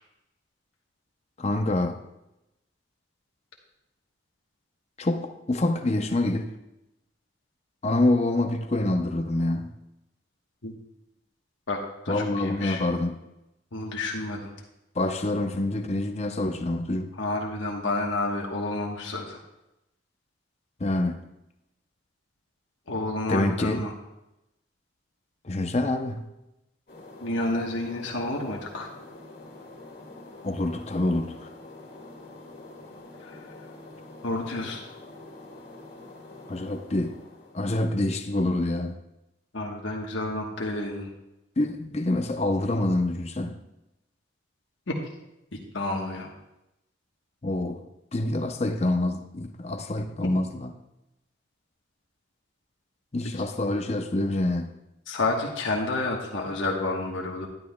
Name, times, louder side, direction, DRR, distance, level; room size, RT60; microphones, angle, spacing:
voice 1, 1.4-2.0 5.0-6.5 7.8-9.7 12.1-13.2 15.0-17.1 20.8-21.2 23.3-23.9 25.4-26.2 30.4-31.4 36.5-37.2 37.5-39.0 41.6-43.6 47.4-47.8 48.1-50.7 53.1-54.8, left 2 dB, 35° left, 0.6 m, -26 dB
voice 2, 11.7-12.8 13.7-14.5 17.2-19.4 22.9-23.9 27.2-28.9 33.2-33.4 34.2-34.8 39.5-41.1 44.9-45.0 45.7-46.3 55.1-57.5, left 2 dB, 85° left, 1.2 m, -30 dB
sound 1, 26.9-37.9, left 2 dB, 55° left, 2.1 m, -46 dB
11.5 x 10.5 x 2.2 m
head